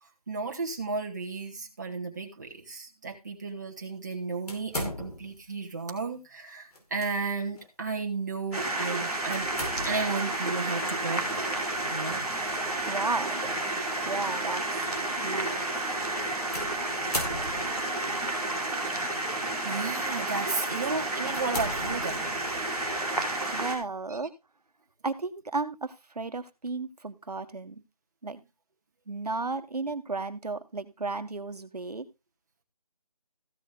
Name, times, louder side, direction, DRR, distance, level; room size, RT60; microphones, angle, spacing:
voice 1, 0.0-9.5 9.8-11.5 11.9-12.2 19.3-22.3, right 4 dB, 30° right, 1 dB, 2.1 m, -34 dB
sound 1, 4.5-5.5 6.7-7.1 7.6-7.7 9.3-10.2 12.3-12.6 13.4-13.5 16.5-17.9 18.8-19.3 19.9-20.1 20.6-20.7 21.3-22.5, left 1 dB, 80° left, 4.8 m, -37 dB
sound 2, 8.5-23.7, right 2 dB, 5° left, 1.7 m, -31 dB
voice 2, 12.9-13.4 14.0-14.8 15.2-15.6 23.5-24.3 25.0-27.8 28.2-28.4 29.1-32.1, right 3 dB, 85° right, 9 dB, 1.7 m, -34 dB
15.0 x 6.9 x 3.9 m, 0.25 s
figure-of-eight pair, 180°, 19 cm